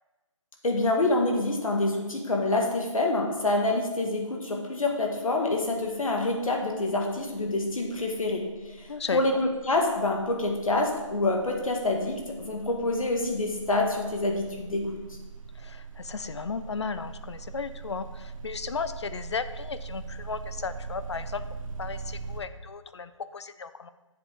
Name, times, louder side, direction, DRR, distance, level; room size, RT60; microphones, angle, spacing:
voice 1, 0.6-15.2, left 2 dB, 85° left, 1 dB, 2.0 m, -27 dB
sound 1, 5.7-6.0 6.3-22.4, right 4 dB, 75° right, 1.2 m, -42 dB
voice 2, 8.9-9.2 15.5-21.4 21.8-23.9, left 5 dB, 55° left, 12 dB, 0.6 m, -35 dB
9.4 x 7.4 x 3.7 m, 1.2 s
hypercardioid pair, 175°, 17 cm